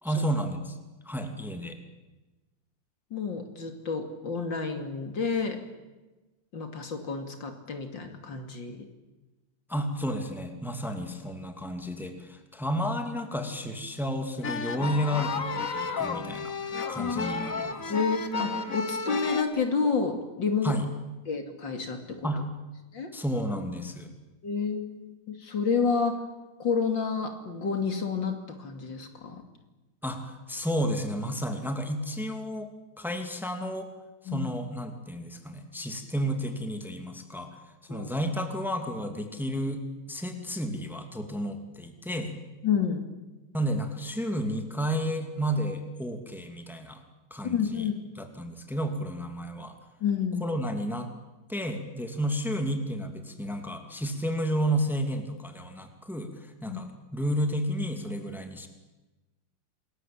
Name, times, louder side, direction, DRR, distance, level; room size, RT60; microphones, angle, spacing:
voice 1, 0.0-0.8 1.0-1.8 9.7-17.9 20.6-20.9 22.2-22.4 23.1-24.1 30.0-33.9 34.2-39.8 40.1-42.3 43.5-47.0 47.3-47.9 48.2-49.7 50.4-51.1 51.5-58.7, equal, ahead, 5 dB, 2.5 m, -32 dB
voice 2, 3.1-5.6 6.5-8.9 17.0-17.5 17.9-20.7 21.3-22.0 22.9-23.1 24.4-26.2 26.6-29.4 34.3-34.5 37.9-38.1 42.6-43.1 47.4-48.0 50.0-50.6 56.7-56.8, left 5 dB, 65° left, 6 dB, 3.3 m, -30 dB
sound 1, 14.4-19.4, left 5 dB, 45° left, 2.0 m, -32 dB
28.0 x 20.5 x 8.9 m, 1.1 s
omnidirectional pair, 2.2 m